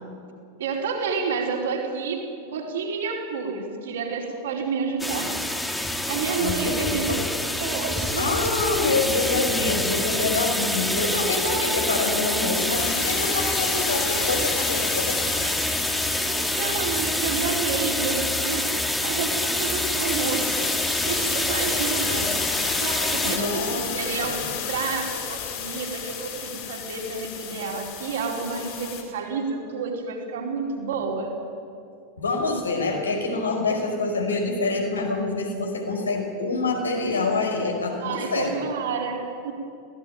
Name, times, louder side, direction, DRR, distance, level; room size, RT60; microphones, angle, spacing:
voice 1, 0.6-5.4 6.1-7.1 7.5-8.3 11.5-11.6 16.2-20.7 21.0-22.4 22.8-31.4 38.0-39.5, right 5 dB, 60° right, 0 dB, 4.8 m, -30 dB
sound 1, 5.0-23.4, left 1 dB, 5° left, 2.1 m, -26 dB
voice 2, 6.4-7.2 8.2-15.2 23.3-23.9 24.2-24.4 32.2-38.5, left 3 dB, 75° left, 3 dB, 5.2 m, -26 dB
sound 2, 12.7-29.0, left 8 dB, 45° left, 5.8 m, -33 dB
23.5 x 17.5 x 9.4 m, 2.5 s
figure-of-eight pair, 90°, 0 cm